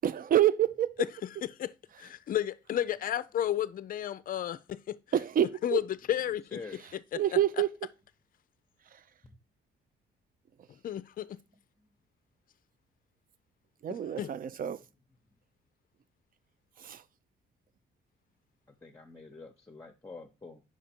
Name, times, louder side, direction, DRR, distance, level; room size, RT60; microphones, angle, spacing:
voice 1, 0.0-1.0 5.1-5.8 7.1-7.7 8.9-9.0 13.8-14.8 16.8-17.0, right 11 dB, 45° right, 0.5 m, -27 dB
voice 2, 2.0-5.0 5.6-5.8 6.1-6.6 6.9-7.2 10.8-11.4 14.2-14.3, left 11 dB, 45° left, 0.4 m, -32 dB
voice 3, 6.5-6.8 18.8-20.6, left 3 dB, 15° left, 0.8 m, -46 dB
5.0 x 4.9 x 4.3 m
cardioid pair, 90°, 20 cm